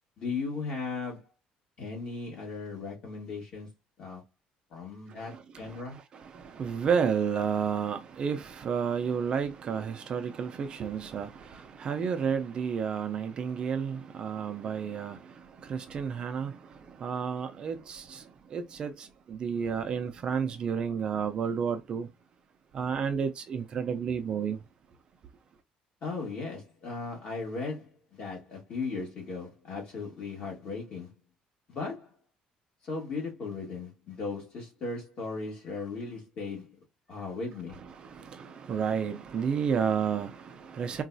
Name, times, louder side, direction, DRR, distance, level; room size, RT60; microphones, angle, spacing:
voice 1, 0.2-1.3 1.8-3.7 4.0-4.2 4.7-6.0 26.0-31.1 31.7-32.1 32.8-36.8 37.1-37.8, left 4 dB, 45° left, 1.7 m, -37 dB
voice 2, 5.1-22.1 22.7-24.6 38.0-41.0, right 6 dB, 35° right, 0.4 m, -31 dB
3.9 x 2.3 x 2.5 m
cardioid pair, 160°, 3 cm